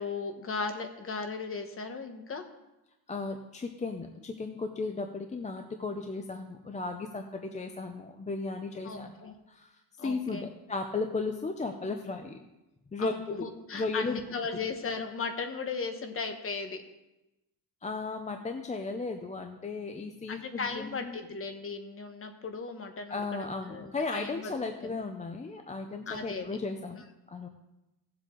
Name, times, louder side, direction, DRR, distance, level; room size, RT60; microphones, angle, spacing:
voice 1, 0.0-2.4 8.8-9.3 10.0-10.5 13.0-16.8 20.3-24.5 24.8-25.0 26.1-26.6, left 4 dB, 35° left, 6 dB, 1.1 m, -37 dB
voice 2, 3.1-9.7 10.0-12.4 12.9-13.5 13.7-14.2 14.5-14.6 17.8-21.2 23.1-27.5, left 3 dB, 20° left, 5 dB, 0.6 m, -35 dB
16.5 x 7.6 x 3.8 m, 0.97 s
cardioid pair, 140°, 39 cm